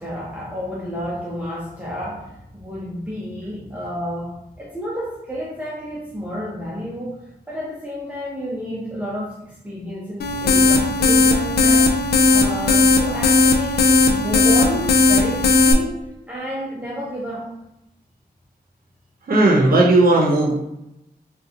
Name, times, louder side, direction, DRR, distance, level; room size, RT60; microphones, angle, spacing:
voice 1, 0.0-11.9 12.3-15.9 16.3-17.5, equal, 10° right, -7 dB, 0.7 m, -30 dB
sound 1, 10.2-15.7, left 3 dB, 85° left, 0.4 m, -16 dB
voice 2, 19.3-20.5, right 2 dB, 65° right, -3 dB, 0.8 m, -15 dB
3.8 x 2.4 x 2.9 m, 0.88 s
wide cardioid pair, 130°, 16 cm